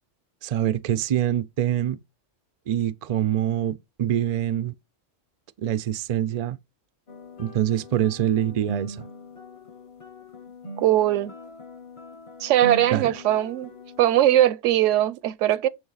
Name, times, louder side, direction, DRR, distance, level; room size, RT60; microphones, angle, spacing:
voice 1, 0.4-2.0 2.7-4.7 5.6-6.6 7.4-9.0 12.9-13.1, right 11 dB, 65° right, 0.3 m, -25 dB
sound 1, 7.1-14.2, equal, 35° left, 0.6 m, -40 dB
voice 2, 10.8-11.3 12.4-13.7 14.0-15.7, right 13 dB, 80° right, 0.9 m, -20 dB
9.0 x 3.3 x 4.0 m
omnidirectional pair, 1.3 m